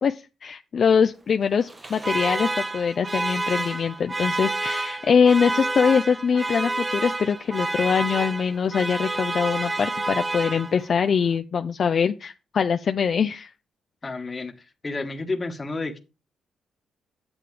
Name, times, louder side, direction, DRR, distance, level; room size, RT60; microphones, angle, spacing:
voice 1, 0.0-13.5, left 6 dB, 55° left, 0.4 m, -23 dB
Alarm, 1.6-11.0, right 2 dB, 25° right, 0.8 m, -29 dB
voice 2, 14.0-14.5 14.8-16.0, left 3 dB, 30° left, 1.3 m, -30 dB
8.8 x 7.5 x 3.3 m
cardioid pair, 85°, 0 cm